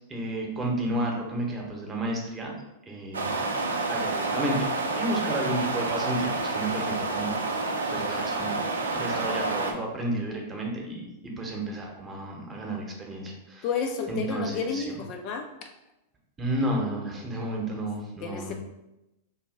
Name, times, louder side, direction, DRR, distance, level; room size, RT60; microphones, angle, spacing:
voice 1, 0.1-2.5 2.9-3.5 3.9-4.7 4.9-13.7 14.1-15.0 16.4-18.5, right 1 dB, 20° right, -1 dB, 0.9 m, -32 dB
sound 1, 3.1-9.7, right 3 dB, 80° right, 0.4 m, -29 dB
voice 2, 13.6-15.5 18.2-18.5, left 6 dB, 45° left, 3 dB, 0.4 m, -31 dB
2.7 x 2.7 x 3.8 m, 0.93 s
figure-of-eight pair, 95°, 0 cm